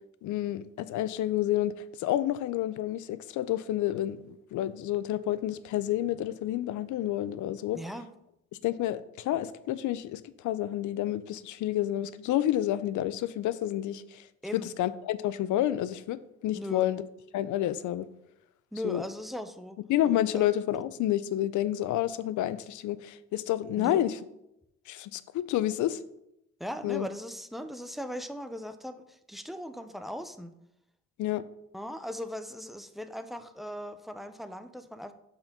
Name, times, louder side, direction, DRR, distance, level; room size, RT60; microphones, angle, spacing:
voice 1, 0.2-7.8 8.6-14.2 14.5-17.0 17.3-18.1 18.8-19.0 19.9-24.2 24.9-26.0 26.8-27.1 31.2-31.4, left 13 dB, 75° left, 15 dB, 0.5 m, -29 dB
voice 2, 7.7-8.1 14.4-14.7 16.5-16.9 18.7-19.8 20.3-20.5 23.8-24.1 26.6-30.5 31.7-35.1, equal, ahead, 9 dB, 0.5 m, -38 dB
5.7 x 4.4 x 5.2 m, 0.82 s
cardioid pair, 90°, 30 cm